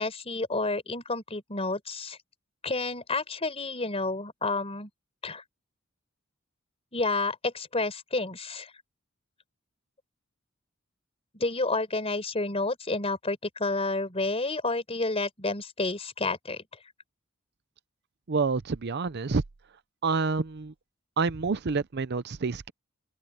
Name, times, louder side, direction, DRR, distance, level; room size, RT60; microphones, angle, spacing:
voice 1, 0.0-2.2 2.6-4.9 5.2-5.4 6.9-8.7 11.3-16.6, left 3 dB, 30° left, 4.8 m, -30 dB
voice 2, 18.3-19.4 20.0-20.7 21.2-22.7, right 4 dB, 55° right, 0.6 m, -28 dB
open air
head